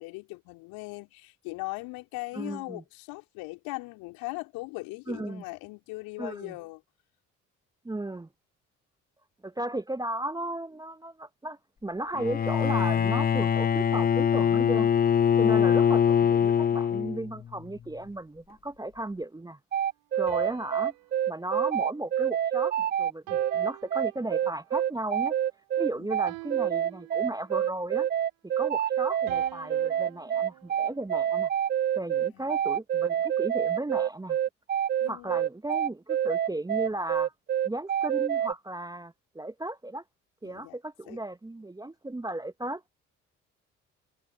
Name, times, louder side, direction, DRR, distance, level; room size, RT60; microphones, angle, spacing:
voice 1, 0.0-6.8 25.9-26.2 32.2-32.5 35.0-35.4 40.4-40.8 41.1-41.2, left 24 dB, 70° left, 3.9 m, -39 dB
voice 2, 2.3-2.8 5.1-5.4 6.2-6.5 7.8-8.3 9.4-14.9 15.4-19.6 20.1-20.9 21.3-25.3 25.8-28.1 28.4-31.5 32.0-34.4 35.1-37.3 37.6-40.0 40.4-42.9, right 1 dB, 10° right, 1.0 m, -35 dB
Bowed string instrument, 12.2-17.4, left 8 dB, 25° left, 0.6 m, -23 dB
sound 1, 19.7-38.5, right 10 dB, 25° right, 0.5 m, -27 dB
sound 2, 20.3-22.7 23.3-24.7 26.3-27.7 29.3-31.6, right 25 dB, 70° right, 2.6 m, -47 dB
figure-of-eight pair, 50°, 37 cm